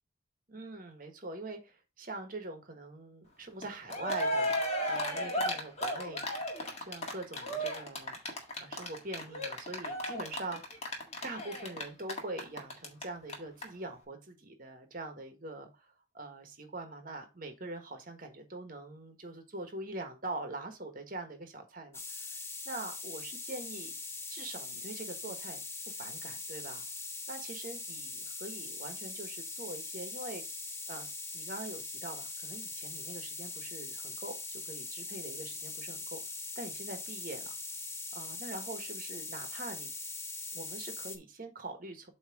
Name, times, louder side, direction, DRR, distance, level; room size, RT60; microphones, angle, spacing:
voice 1, 0.5-6.2 6.8-8.2 8.6-10.8 11.2-23.9 24.3-25.6 25.9-26.8 27.3-30.4 30.9-36.2 36.6-37.5 38.1-39.9 40.5-42.1, right 2 dB, 45° right, 6 dB, 1.4 m, -43 dB
Cheering, 3.6-3.7 3.9-13.0 13.3-13.4 13.6-13.7, equal, 35° left, 1.6 m, -34 dB
sound 1, 21.9-41.2, left 3 dB, 15° left, 0.9 m, -41 dB
8.1 x 3.2 x 4.7 m, 0.29 s
head